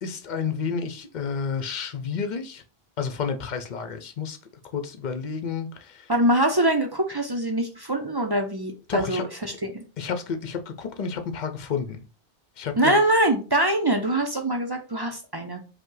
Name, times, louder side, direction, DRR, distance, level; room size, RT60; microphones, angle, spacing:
voice 1, 0.0-2.6 3.0-4.4 4.7-6.1 8.9-9.2 10.0-12.0 12.6-13.0, left 6 dB, 50° left, 7 dB, 0.6 m, -30 dB
voice 2, 6.1-9.2 9.6-9.8 12.7-15.6, right 1 dB, 35° right, 4 dB, 0.4 m, -23 dB
5.3 x 2.2 x 3.8 m, 0.34 s
omnidirectional pair, 1.1 m